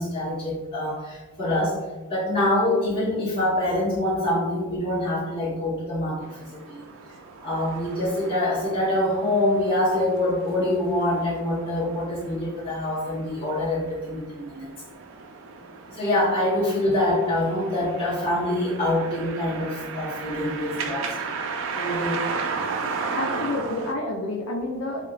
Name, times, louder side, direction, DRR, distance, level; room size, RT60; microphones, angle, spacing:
voice 1, 0.0-1.8 2.1-6.2 6.5-6.8 7.4-14.7 15.9-21.1 21.8-22.4, left 1 dB, 25° left, -7 dB, 1.3 m, -25 dB
sound 1, 6.2-23.9, right 4 dB, 65° right, 0.4 m, -35 dB
voice 2, 23.2-25.1, left 2 dB, 85° left, 2 dB, 0.5 m, -29 dB
5.5 x 2.2 x 2.4 m, 1.3 s
head